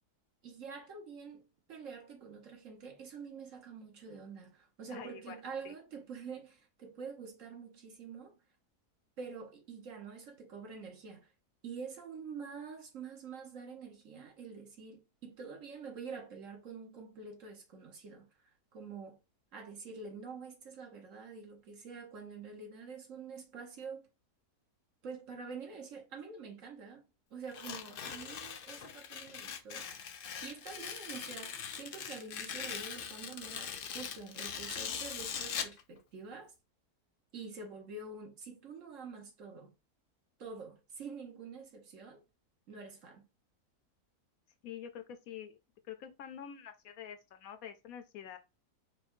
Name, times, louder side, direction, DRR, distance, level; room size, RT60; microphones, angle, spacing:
voice 1, 0.4-1.4 1.7-8.3 9.2-11.3 11.6-18.3 18.7-19.2 19.5-24.1 25.0-27.0 27.3-29.9 30.4-36.5 37.3-39.7 40.4-42.2 42.7-43.2, right 5 dB, 55° right, 1.4 m, -46 dB
voice 2, 4.9-5.7 28.0-28.1 44.6-45.6 45.8-48.4, left 9 dB, 70° left, 0.9 m, -47 dB
Tearing, 27.5-35.8, left 7 dB, 90° left, 0.4 m, -41 dB
4.8 x 2.3 x 4.3 m
omnidirectional pair, 1.6 m